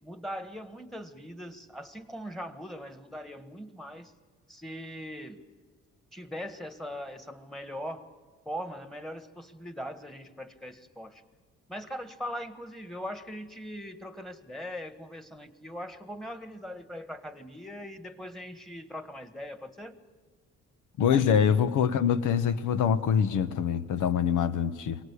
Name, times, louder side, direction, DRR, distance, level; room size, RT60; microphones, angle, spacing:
voice 1, 0.0-4.1 4.5-5.4 6.1-8.1 8.4-11.2 11.7-20.0, equal, ahead, 10 dB, 1.6 m, -40 dB
voice 2, 21.0-25.0, left 7 dB, 85° left, 12 dB, 1.1 m, -24 dB
23.5 x 18.0 x 8.4 m, 1.5 s
cardioid pair, 90°, 30 cm